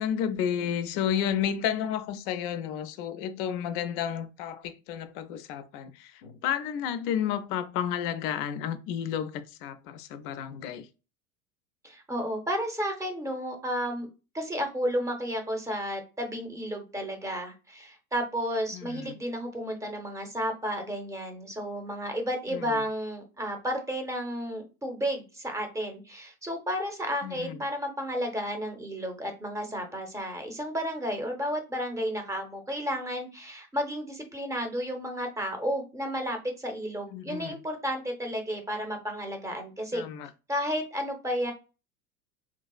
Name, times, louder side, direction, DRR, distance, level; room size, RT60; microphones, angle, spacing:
voice 1, 0.0-10.9 18.7-19.2 22.5-22.8 27.2-27.6 37.1-37.6 39.9-40.3, left 9 dB, 40° left, 0.4 m, -32 dB
voice 2, 11.8-14.1 14.3-40.0 40.5-41.5, equal, 5° right, 0.7 m, -32 dB
3.9 x 2.4 x 2.3 m
figure-of-eight pair, 80°, 45 cm